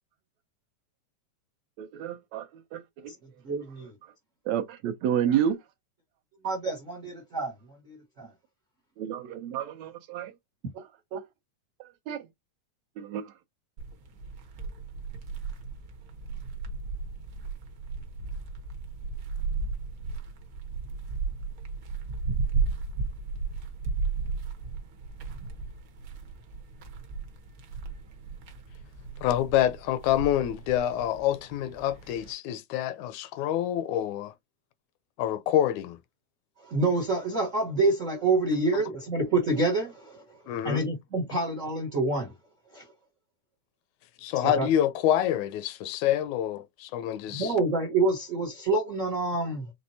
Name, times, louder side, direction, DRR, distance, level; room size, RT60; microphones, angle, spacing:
voice 1, 1.8-3.1 4.5-5.6 9.0-10.3 10.7-10.8 11.1-11.2 11.8-12.3 13.0-13.3, right 9 dB, 75° right, 1.8 m, -30 dB
voice 2, 3.4-3.9 6.4-7.5 7.8-8.3 36.6-40.2 40.6-42.3 42.7-42.8 44.4-44.7 47.3-49.7, right 2 dB, 90° right, 0.6 m, -27 dB
sound 1, 13.8-32.3, right 4 dB, 60° right, 1.3 m, -35 dB
voice 3, 29.2-34.3 35.2-36.0 40.5-40.8 44.2-47.5, left 11 dB, 80° left, 1.8 m, -27 dB
6.1 x 3.2 x 2.7 m
omnidirectional pair, 3.5 m